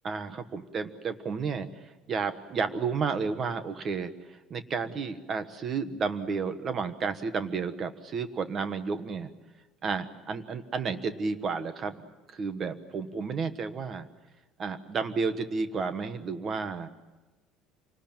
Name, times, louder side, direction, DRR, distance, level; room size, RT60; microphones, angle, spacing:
voice 1, 0.0-9.3 9.8-14.1 14.6-16.9, right 5 dB, 25° right, 10 dB, 1.3 m, -32 dB
27.5 x 19.5 x 8.9 m, 1.2 s
cardioid pair, 180°, 0 cm